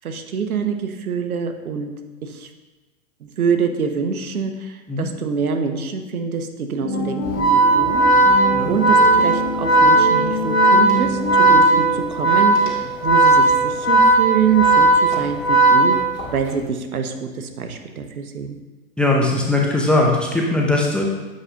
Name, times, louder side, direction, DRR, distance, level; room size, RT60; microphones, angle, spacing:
voice 1, 0.0-1.9 2.2-2.5 3.2-8.1 8.7-11.2 11.5-12.6 13.0-16.0 16.3-18.6, right 6 dB, 90° right, 6 dB, 0.9 m, -25 dB
sound 1, 6.8-12.0, left 2 dB, 35° left, 1.4 m, -26 dB
Organ, 7.3-16.4, right 2 dB, 60° left, 2.1 m, -15 dB
voice 2, 19.0-21.0, left 2 dB, 5° left, -2 dB, 0.5 m, -19 dB
7.8 x 5.6 x 2.8 m, 1.2 s
hypercardioid pair, 120°, 42 cm